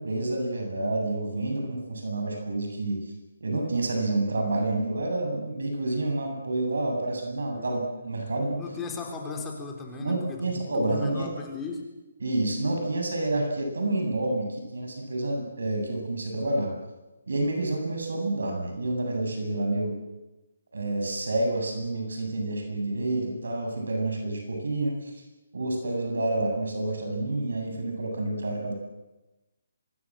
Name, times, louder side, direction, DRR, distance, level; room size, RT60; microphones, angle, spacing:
voice 1, 0.0-3.0 3.4-8.6 10.0-11.3 12.2-16.7 17.3-20.0 20.7-25.1 25.5-28.7, right 2 dB, 85° right, 3 dB, 8.0 m, -28 dB
voice 2, 8.6-11.9, left 4 dB, 10° left, 1 dB, 3.9 m, -37 dB
24.0 x 23.0 x 7.8 m, 1.1 s
hypercardioid pair, 165°, 0 cm